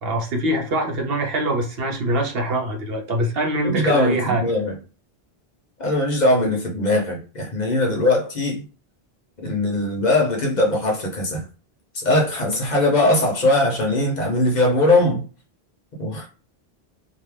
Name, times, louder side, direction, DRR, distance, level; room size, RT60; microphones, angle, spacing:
voice 1, 0.0-4.4, right 1 dB, 70° right, 1.0 m, -23 dB
voice 2, 3.6-4.7 5.8-8.6 9.4-11.4 11.9-15.2 16.0-16.3, left 2 dB, 50° left, 0.8 m, -20 dB
2.6 x 2.3 x 3.2 m
omnidirectional pair, 1.1 m